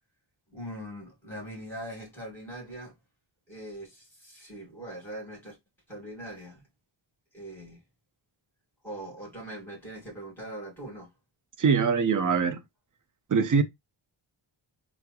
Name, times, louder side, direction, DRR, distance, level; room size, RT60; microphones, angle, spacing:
voice 1, 0.5-2.9 3.5-5.6 5.9-6.6 7.3-7.8 8.8-11.1, right 1 dB, 5° left, 2.1 m, -41 dB
voice 2, 11.6-12.6 13.3-13.6, right 6 dB, 40° right, 0.5 m, -23 dB
3.6 x 2.1 x 2.9 m
wide cardioid pair, 135°, 48 cm